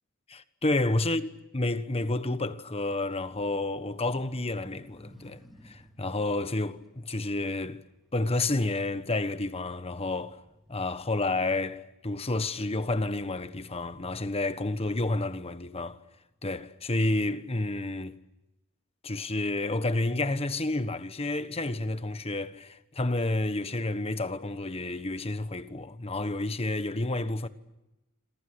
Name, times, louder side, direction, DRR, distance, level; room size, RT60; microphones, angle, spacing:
voice 1, 0.3-1.2 1.5-7.8 8.1-10.4 10.7-16.0 16.4-18.2 19.0-27.5, left 2 dB, 30° left, 1.3 m, -30 dB
sound 1, 2.9-8.4 8.9-10.8, equal, ahead, 3.1 m, -57 dB
27.5 x 26.0 x 8.1 m
head